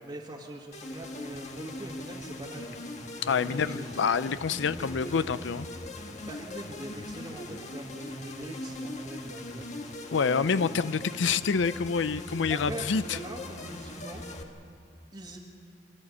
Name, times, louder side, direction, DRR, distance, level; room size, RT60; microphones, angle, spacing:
voice 1, 0.0-2.7 3.3-4.1 4.5-5.2 6.2-9.8 10.5-10.7 12.5-14.2 15.1-15.4, right 1 dB, 25° right, -5 dB, 1.9 m, -43 dB
sound 1, 0.7-14.4, left 1 dB, 40° left, 1.6 m, -40 dB
voice 2, 3.2-5.7 10.1-13.2, left 5 dB, 70° left, 15 dB, 0.5 m, -27 dB
28.5 x 12.0 x 8.5 m, 2.4 s
head